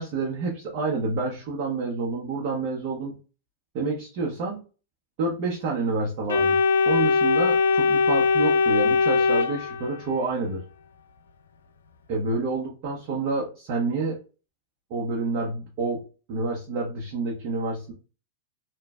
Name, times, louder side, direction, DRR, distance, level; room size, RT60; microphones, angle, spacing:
voice 1, 0.0-3.2 3.7-4.6 5.2-6.6 6.9-10.6 12.1-14.2 14.9-17.9, right 3 dB, 50° right, -3 dB, 1.0 m, -28 dB
Organ, 6.3-10.2, left 4 dB, 80° left, 0.4 m, -21 dB
3.1 x 2.4 x 2.4 m, 0.34 s
hypercardioid pair, 110°, 0 cm